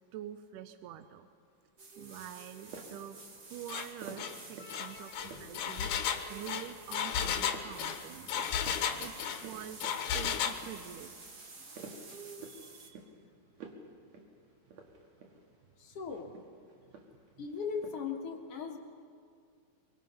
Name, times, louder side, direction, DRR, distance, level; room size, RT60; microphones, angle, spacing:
voice 1, 0.1-1.3 2.0-3.2 3.5-5.9 6.3-8.5 9.0-11.4 12.4-13.0 17.4-17.5, right 11 dB, 85° right, 10 dB, 2.2 m, -46 dB
sound 1, 1.8-12.9, right 3 dB, 40° right, 1.3 m, -51 dB
sound 2, 2.6-3.1 4.0-4.8 5.1-5.8 6.2-6.5 6.8-6.9 7.2-7.7 8.1-8.8 9.1-10.0 10.4-11.1 11.5-12.6 12.9-13.2 13.5-13.9 14.1-14.3 14.7-15.5 16.1-17.3 17.6-18.0, right 4 dB, 60° right, 2.9 m, -49 dB
Engine, 3.7-3.9 4.2-4.4 4.7-9.4 9.8-10.6, left 8 dB, 75° left, 2.3 m, -33 dB
voice 2, 4.6-5.1 15.8-16.3 17.4-18.8, left 6 dB, 55° left, 1 dB, 2.2 m, -39 dB
24.5 x 23.5 x 5.6 m, 2.3 s
omnidirectional pair, 3.6 m